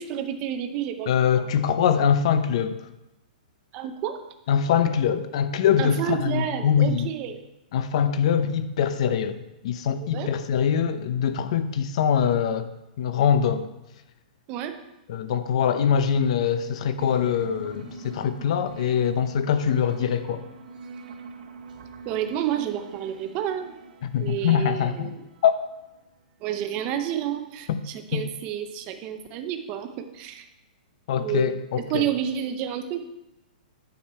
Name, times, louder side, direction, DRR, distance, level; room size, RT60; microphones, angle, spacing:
voice 1, 0.0-1.4 3.7-4.2 5.8-7.3 9.1-9.2 10.0-10.3 14.5-14.7 22.1-23.7 24.2-25.2 26.4-30.5 31.2-31.5 31.9-33.1, right 10 dB, 25° right, 7 dB, 0.7 m, -30 dB
voice 2, 1.1-2.9 4.5-7.1 7.7-9.4 9.6-12.7 13.0-13.7 15.1-20.4 24.0-25.1 25.4-25.6 27.7-27.8 28.1-28.2 31.1-32.1, left 8 dB, 45° left, 11 dB, 0.7 m, -23 dB
sound 1, 17.0-26.0, right 4 dB, 65° right, 1.4 m, -43 dB
9.3 x 6.6 x 4.3 m, 0.95 s
hypercardioid pair, 175°, 5 cm